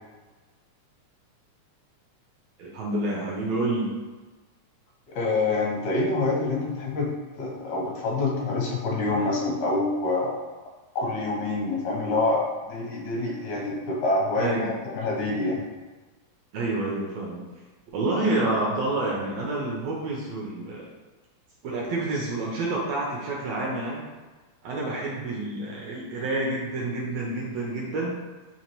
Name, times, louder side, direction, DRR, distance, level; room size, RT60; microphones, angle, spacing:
voice 1, 2.6-3.9 14.4-14.7 16.5-17.4 17.9-20.8 21.6-24.0 24.6-28.2, right 2 dB, 75° right, -3 dB, 1.5 m, -28 dB
voice 2, 5.1-7.1 7.4-10.4 11.0-15.6, left 2 dB, 85° left, -3 dB, 2.2 m, -26 dB
5.1 x 2.9 x 2.9 m, 1.3 s
omnidirectional pair, 3.4 m